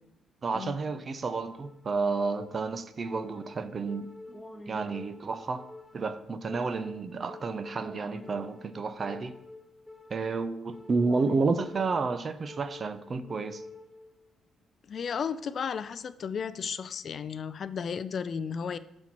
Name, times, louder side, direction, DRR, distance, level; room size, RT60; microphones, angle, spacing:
voice 1, 0.4-4.1 4.7-9.4 10.1-13.6, right 4 dB, 30° right, 0.5 m, -31 dB
sound 1, 1.3-14.3, left 2 dB, ahead, 0.8 m, -47 dB
voice 2, 14.9-18.8, left 6 dB, 40° left, 0.4 m, -34 dB
12.0 x 4.3 x 6.0 m
cardioid pair, 160°, 0 cm